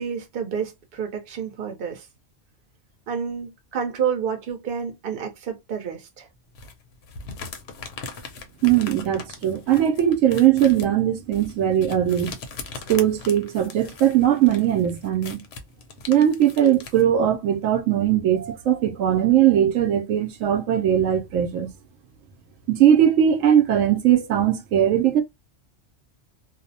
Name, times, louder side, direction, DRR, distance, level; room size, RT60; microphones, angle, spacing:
voice 1, 0.0-2.1 3.1-6.3, right 7 dB, 50° right, 0.8 m, -29 dB
sound 1, 6.5-17.0, left 5 dB, 65° left, 0.8 m, -40 dB
voice 2, 8.6-12.3 12.9-15.4 16.1-21.7 22.7-25.2, right 10 dB, 85° right, 1.0 m, -19 dB
2.6 x 2.0 x 2.7 m
omnidirectional pair, 1.3 m